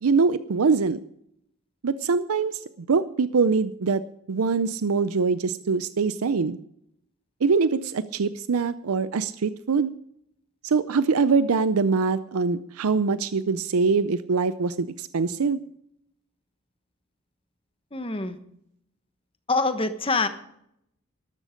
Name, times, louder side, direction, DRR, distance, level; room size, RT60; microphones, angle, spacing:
voice 1, 0.0-1.0 1.8-2.6 2.9-4.0 4.3-6.6 7.4-9.9 10.6-15.6, right 4 dB, 80° right, 14 dB, 0.5 m, -23 dB
voice 2, 17.9-18.4 19.5-20.3, left 3 dB, 25° left, 10 dB, 1.1 m, -25 dB
13.0 x 13.0 x 5.1 m, 0.75 s
head